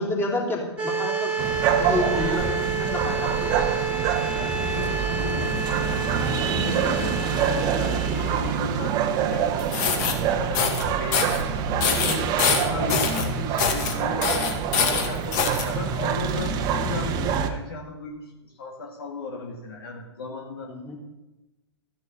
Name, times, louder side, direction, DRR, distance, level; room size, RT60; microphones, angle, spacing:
voice 1, 0.0-1.5 1.8-3.8 20.7-21.0, left 2 dB, 15° left, -1 dB, 3.6 m, -29 dB
sound 1, 0.8-8.6, right 5 dB, 10° right, 2.4 m, -29 dB
sound 2, 1.4-17.5, right 7 dB, 30° right, 1.3 m, -26 dB
voice 2, 4.3-6.0 6.3-9.0 9.3-11.5 11.8-12.4 12.6-20.7, left 2 dB, 55° left, 2 dB, 2.4 m, -36 dB
sound 3, 9.6-10.1 10.5-10.8 11.1-11.4 11.8-13.3 13.6-13.9 14.2-15.6, left 6 dB, 40° left, 2.2 m, -24 dB
13.5 x 11.0 x 5.7 m, 1.0 s
figure-of-eight pair, 110°, 14 cm